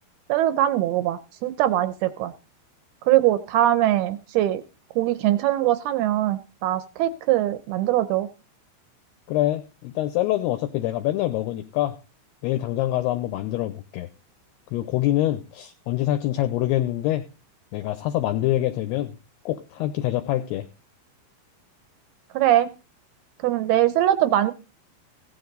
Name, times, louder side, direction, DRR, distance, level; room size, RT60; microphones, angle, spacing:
voice 1, 0.3-2.3 3.1-4.6 5.0-8.3 22.3-22.7 23.4-24.5, right 13 dB, 80° right, 12 dB, 2.3 m, -22 dB
voice 2, 9.3-12.0 12.4-14.1 14.7-17.2 17.7-19.1 19.5-20.7, left 14 dB, 80° left, 8 dB, 2.5 m, -25 dB
16.0 x 10.0 x 4.0 m, 0.31 s
omnidirectional pair, 5.3 m